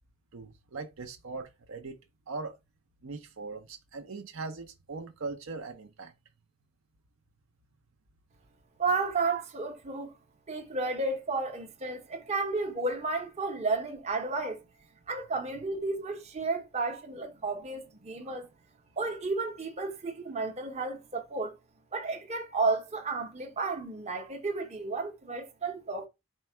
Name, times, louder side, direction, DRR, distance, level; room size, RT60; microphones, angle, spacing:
voice 1, 0.3-2.0 2.3-2.6 3.0-6.1, right 3 dB, 65° right, 0.6 m, -40 dB
voice 2, 8.8-10.1 10.5-14.6 15.1-18.5 19.0-21.6 21.9-26.1, right 3 dB, 30° right, 0.8 m, -32 dB
4.5 x 2.1 x 4.4 m
head